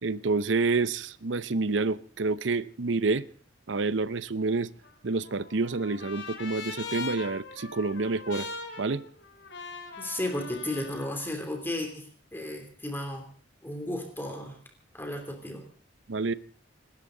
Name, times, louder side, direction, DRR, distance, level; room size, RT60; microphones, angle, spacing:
voice 1, 0.0-3.3 3.7-4.7 5.0-8.5 8.8-9.0 16.1-16.3, right 3 dB, 90° right, 0.7 m, -28 dB
Trumpet, 4.8-11.2, left 4 dB, 80° left, 2.8 m, -41 dB
voice 2, 10.0-13.2 13.6-14.6 14.9-15.6, left 1 dB, 10° left, 3.1 m, -34 dB
27.5 x 13.0 x 3.9 m
head